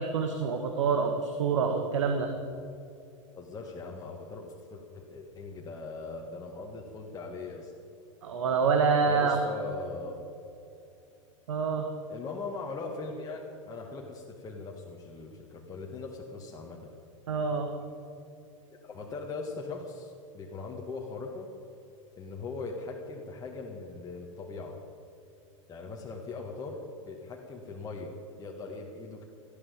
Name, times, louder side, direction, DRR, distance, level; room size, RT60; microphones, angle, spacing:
voice 1, 0.0-2.3 8.2-9.4 11.5-11.9 17.3-17.7, right 5 dB, 65° right, 5 dB, 1.6 m, -26 dB
voice 2, 3.4-7.7 9.1-10.3 12.1-16.9 18.8-21.5 22.2-24.8 25.7-26.8 27.0-28.1 28.4-29.2, left 3 dB, 20° left, -1 dB, 1.9 m, -40 dB
19.0 x 14.0 x 5.2 m, 2.7 s
figure-of-eight pair, 90°, 17 cm